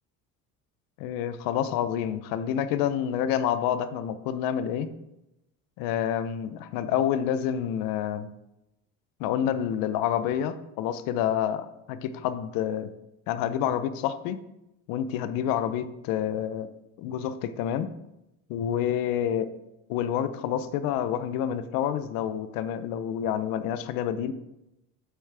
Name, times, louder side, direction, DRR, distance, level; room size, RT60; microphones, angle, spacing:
voice 1, 1.0-4.9 5.8-8.3 9.2-12.9 13.3-14.4 14.9-16.7 17.0-17.9 18.5-19.5 19.9-24.3, left 9 dB, 75° left, 12 dB, 0.6 m, -28 dB
7.7 x 4.9 x 3.4 m, 0.89 s
cardioid pair, 130°, 34 cm